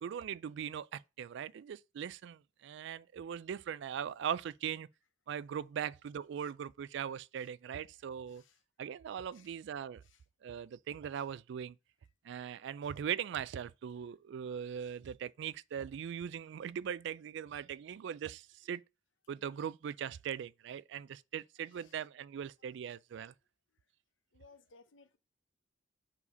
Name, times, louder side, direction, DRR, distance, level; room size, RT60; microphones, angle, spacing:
voice 1, 0.0-4.9 5.3-8.4 8.8-10.0 10.4-11.8 12.2-18.8 19.3-23.3, right 8 dB, 65° right, 0.3 m, -40 dB
voice 2, 24.3-25.2, left 4 dB, 75° left, 0.8 m, -59 dB
4.8 x 4.1 x 5.4 m
head